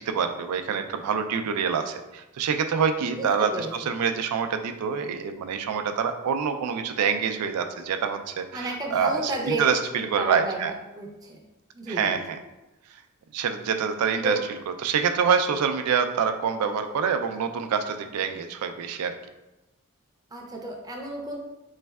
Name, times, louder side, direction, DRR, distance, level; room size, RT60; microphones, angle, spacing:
voice 1, 0.0-10.7 11.9-12.4 13.3-14.4 14.8-19.1, right 6 dB, 85° right, 7 dB, 0.4 m, -26 dB
voice 2, 3.1-3.7 8.5-9.7 10.0-11.4 11.7-12.4 14.2-14.4 20.3-21.4, right 1 dB, 15° right, 0 dB, 0.5 m, -32 dB
4.2 x 3.1 x 2.3 m, 1.0 s
head